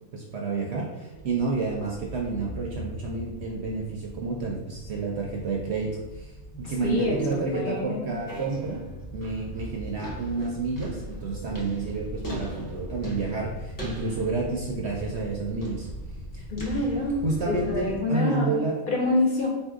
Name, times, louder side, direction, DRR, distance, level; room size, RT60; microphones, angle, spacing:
voice 1, 0.1-8.9 9.1-15.9 16.3-16.4 17.2-18.8, right 3 dB, 60° right, -2 dB, 0.8 m, -30 dB
sound 1, 1.1-18.0, equal, 20° left, 0.7 m, -38 dB
voice 2, 6.8-8.1 16.5-18.5 18.9-19.5, left 2 dB, 40° left, -2 dB, 1.0 m, -26 dB
4.1 x 2.7 x 3.5 m, 1.1 s
omnidirectional pair, 1.5 m